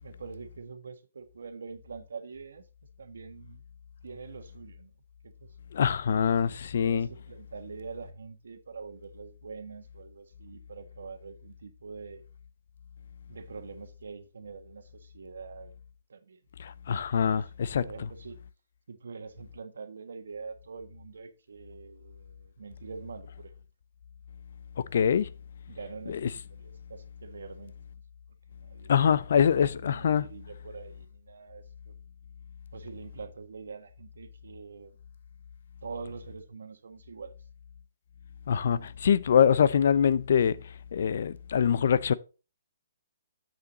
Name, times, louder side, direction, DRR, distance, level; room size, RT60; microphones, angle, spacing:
voice 1, 0.0-2.6 3.0-3.6 4.0-4.9 5.2-5.5 6.4-12.2 13.3-15.7 16.1-16.4 17.0-17.2 17.6-18.4 18.9-23.5 25.7-27.7 28.6-29.2 29.4-31.9 32.7-34.9 35.8-37.3, right 5 dB, 80° right, 1.4 m, -44 dB
voice 2, 5.7-7.1 16.6-17.8 24.9-25.3 26.1-26.3 28.9-30.2 38.5-40.6 40.9-42.1, left 7 dB, 65° left, 0.6 m, -24 dB
7.9 x 7.0 x 3.9 m
hypercardioid pair, 155°, 0 cm